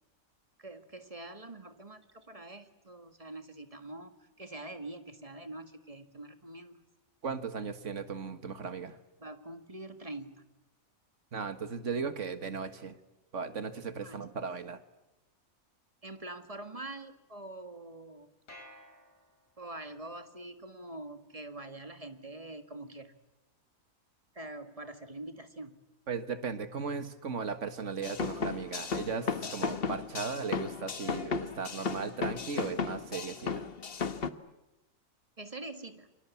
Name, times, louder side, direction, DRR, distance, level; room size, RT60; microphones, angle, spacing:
voice 1, 0.6-6.8 9.2-10.5 13.9-14.2 16.0-18.3 19.6-23.1 24.3-25.8 35.4-36.1, right 2 dB, 25° right, 8 dB, 1.7 m, -45 dB
voice 2, 7.2-9.0 11.3-13.0 13.3-14.8 26.1-33.6, right 5 dB, 60° right, 10 dB, 1.8 m, -37 dB
sound 1, 18.5-19.8, left 1 dB, 80° left, 5.1 m, -54 dB
sound 2, 28.0-34.3, left 5 dB, 45° left, 1.2 m, -35 dB
27.5 x 24.0 x 8.3 m, 0.98 s
omnidirectional pair, 1.4 m